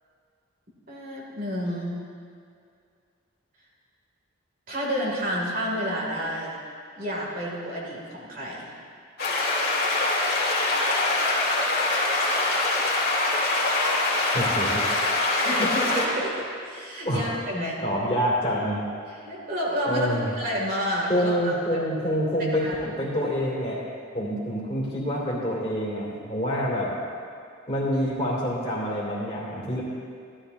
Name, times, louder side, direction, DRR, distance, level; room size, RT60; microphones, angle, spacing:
voice 1, 0.9-2.0 4.7-6.6 6.9-8.7 15.3-17.8 19.1-20.1 20.4-21.5 22.6-22.7, equal, 40° right, -4 dB, 2.3 m, -30 dB
sound 1, 9.2-16.1, left 2 dB, 45° left, 1.9 m, -24 dB
voice 2, 14.3-14.8 17.0-17.3 17.8-18.8 19.8-20.3 21.1-23.8 24.1-26.9 27.7-29.8, equal, 25° left, -5 dB, 2.5 m, -27 dB
15.5 x 11.5 x 2.7 m, 2.3 s
head